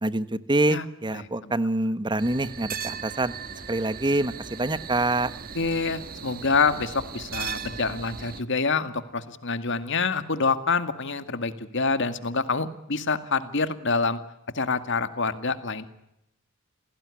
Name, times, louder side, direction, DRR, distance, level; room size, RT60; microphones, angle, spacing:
voice 1, 0.0-3.3 3.7-5.3, right 2 dB, 20° right, 14 dB, 1.2 m, -26 dB
voice 2, 1.1-1.5 5.6-14.2 14.5-15.8, left 4 dB, 60° left, 11 dB, 2.1 m, -26 dB
sound 1, 2.2-8.4, right 6 dB, 45° right, 1.4 m, -37 dB
28.0 x 18.5 x 9.8 m, 0.84 s
head